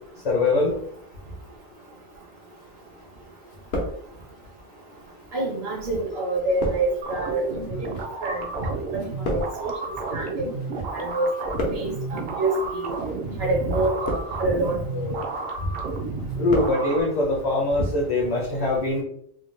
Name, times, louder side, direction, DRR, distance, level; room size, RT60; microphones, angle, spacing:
voice 1, 0.2-0.7 16.4-19.0, left 2 dB, 45° left, -1 dB, 0.7 m, -22 dB
sound 1, 2.6-3.2 3.4-4.5 5.2-10.8 11.1-12.1 12.8-13.1 13.8-14.6 15.0-15.5 15.8-16.8 17.1-17.2, left 1 dB, 75° left, 1.0 m, -33 dB
voice 2, 5.3-7.4 7.7-7.8 8.2-8.4 9.3-9.7 10.1-10.5 10.9-11.3 11.7-12.9 13.4-15.1, right 2 dB, 70° right, -2 dB, 1.3 m, -26 dB
sound 2, 7.0-17.0, right 3 dB, 55° right, 0.6 m, -31 dB
3.5 x 2.2 x 3.1 m, 0.69 s
omnidirectional pair, 1.0 m